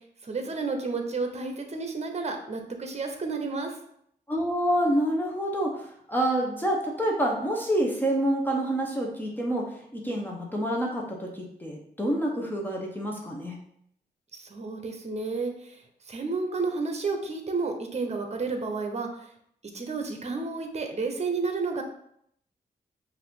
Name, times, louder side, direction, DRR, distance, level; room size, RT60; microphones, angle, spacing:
voice 1, 0.2-3.8 14.3-15.8 16.1-19.1 19.7-21.8, right 4 dB, 40° right, 4 dB, 0.9 m, -31 dB
voice 2, 4.3-9.7 9.9-13.6, right 1 dB, 10° left, -1 dB, 0.9 m, -27 dB
5.4 x 2.7 x 3.7 m, 0.71 s
cardioid pair, 80°, 17 cm